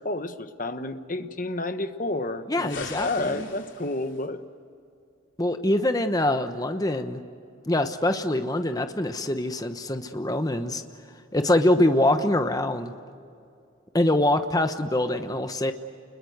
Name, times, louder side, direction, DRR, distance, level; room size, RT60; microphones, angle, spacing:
voice 1, 0.0-4.4, left 2 dB, 40° left, 9 dB, 1.2 m, -30 dB
voice 2, 2.5-3.5 5.4-7.2 7.7-10.8 11.3-12.9 13.9-15.7, left 1 dB, 20° left, 8 dB, 1.0 m, -24 dB
sound 1, 2.7-4.3, left 5 dB, 70° left, 3.4 m, -41 dB
28.5 x 21.5 x 8.0 m, 2.5 s
head